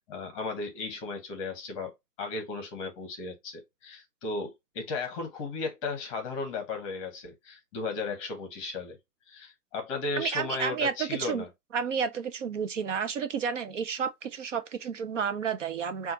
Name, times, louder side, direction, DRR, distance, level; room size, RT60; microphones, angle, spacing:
voice 1, 0.0-9.0 9.3-11.5, left 3 dB, 20° left, 0.9 m, -35 dB
voice 2, 10.2-11.4 11.7-16.1, right 6 dB, 50° right, 0.6 m, -31 dB
5.6 x 2.4 x 2.6 m
hypercardioid pair, 150°, 47 cm